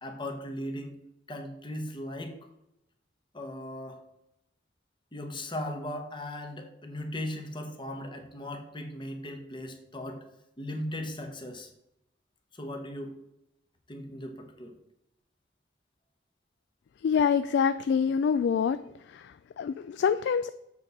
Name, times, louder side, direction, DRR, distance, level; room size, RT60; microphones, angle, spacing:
voice 1, 0.0-0.9 1.3-2.4 3.3-4.0 5.1-10.2 10.6-11.7 12.5-13.1 13.9-14.7, left 1 dB, 25° left, 4 dB, 1.1 m, -38 dB
voice 2, 17.0-18.8 19.1-20.5, left 6 dB, 65° left, 12 dB, 0.3 m, -26 dB
7.5 x 4.1 x 6.0 m, 0.82 s
head